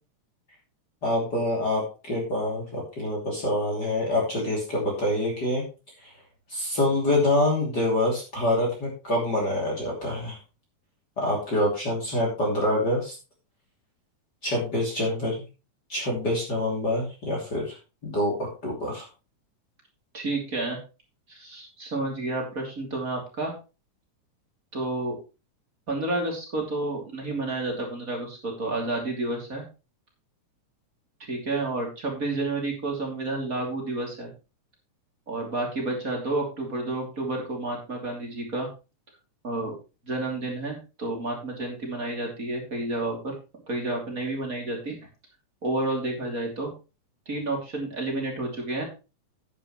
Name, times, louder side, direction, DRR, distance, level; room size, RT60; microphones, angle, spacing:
voice 1, 1.0-5.6 6.0-6.1 6.5-10.4 11.2-13.1 14.4-15.3 15.9-17.7 18.0-19.1, left 1 dB, 30° left, -2 dB, 3.3 m, -26 dB
voice 2, 20.1-20.8 21.3-23.5 24.7-25.2 25.9-29.6 31.3-34.3 35.3-38.7 39.4-39.7 40.1-43.3 43.7-45.0 45.6-46.7 47.3-48.8, right 2 dB, 25° right, 0 dB, 3.1 m, -30 dB
10.5 x 10.0 x 3.1 m, 0.30 s
omnidirectional pair, 3.6 m